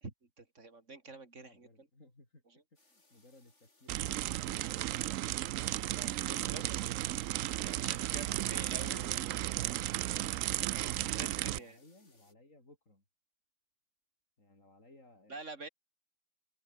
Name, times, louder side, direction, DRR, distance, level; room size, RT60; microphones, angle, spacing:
voice 1, 0.0-1.9 2.5-2.6 5.8-7.0 7.5-9.6 10.7-11.8 15.3-15.7, right 3 dB, 70° right, 3.5 m, -48 dB
voice 2, 1.4-2.4 2.8-4.5 4.9-5.2 8.4-9.1 11.4-13.0 14.4-15.4, left 2 dB, 90° left, 6.4 m, -61 dB
sound 1, 2.8-12.3, left 2 dB, 65° left, 5.0 m, -68 dB
sound 2, 3.9-11.6, right 14 dB, 85° right, 1.0 m, -34 dB
open air
omnidirectional pair, 1.3 m